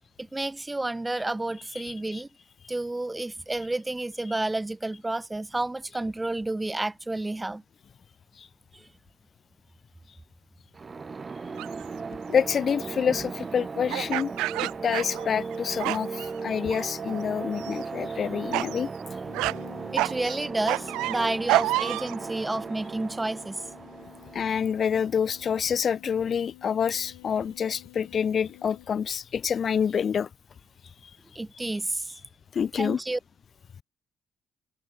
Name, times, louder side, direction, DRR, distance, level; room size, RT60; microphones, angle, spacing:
voice 1, 0.2-2.3 2.7-7.6 8.7-8.9 13.1-13.2 19.9-23.6 31.3-32.1 32.8-33.2, right 2 dB, 15° right, 2.3 m, -30 dB
voice 2, 1.7-2.2 8.4-8.5 12.3-14.3 14.6-18.9 24.3-30.3 32.5-33.0, left 7 dB, 55° left, 2.7 m, -27 dB
sound 1, 10.7-25.5, right 4 dB, 35° right, 2.3 m, -37 dB
sound 2, 11.6-11.8 13.9-15.5 15.8-16.3 16.7-17.2 17.6-17.8 18.5-18.8 19.3-19.6 20.0-22.2, right 19 dB, 80° right, 0.6 m, -28 dB
sound 3, 19.2-29.7, left 31 dB, 85° left, 6.7 m, -51 dB
hypercardioid pair, 50°, 0 cm